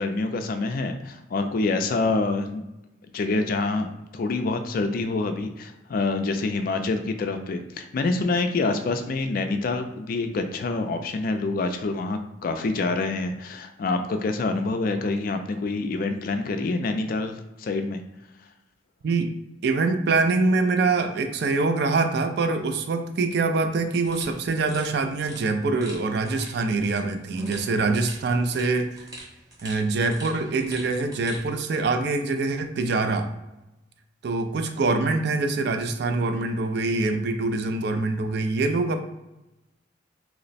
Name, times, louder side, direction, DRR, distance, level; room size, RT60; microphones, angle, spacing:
voice 1, 0.0-2.6 3.1-18.0, left 3 dB, 45° left, 7 dB, 0.3 m, -26 dB
voice 2, 19.6-29.1 29.6-33.3 34.2-39.0, right 3 dB, 55° right, 6 dB, 0.4 m, -24 dB
sound 1, 24.0-31.5, right 1 dB, 20° right, 0.8 m, -44 dB
2.9 x 2.1 x 4.0 m, 0.96 s
head